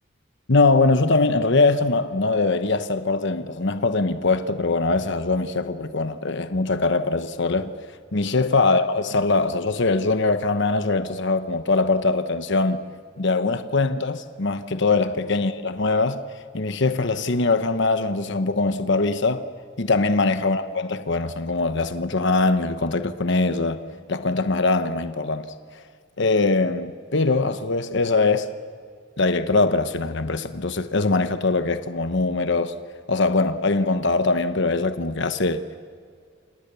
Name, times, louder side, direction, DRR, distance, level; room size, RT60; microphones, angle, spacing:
voice 1, 0.5-7.7 8.1-12.8 13.2-16.2 16.5-19.5 19.8-23.8 24.1-25.5 26.2-28.5 29.2-32.7 33.1-35.6, left 3 dB, 65° left, 1.1 m, -22 dB
29.0 x 27.5 x 7.0 m
head